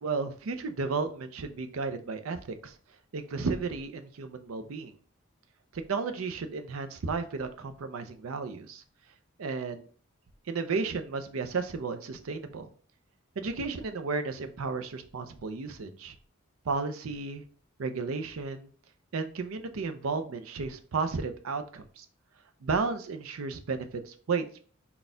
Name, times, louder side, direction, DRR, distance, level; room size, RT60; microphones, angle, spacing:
voice 1, 0.0-2.7 3.1-4.9 5.7-8.8 9.4-9.9 10.5-12.7 13.4-16.1 16.6-17.4 17.8-18.7 19.1-22.1 22.6-24.6, right 4 dB, 85° right, 8 dB, 0.5 m, -33 dB
4.1 x 2.3 x 3.7 m, 0.43 s
head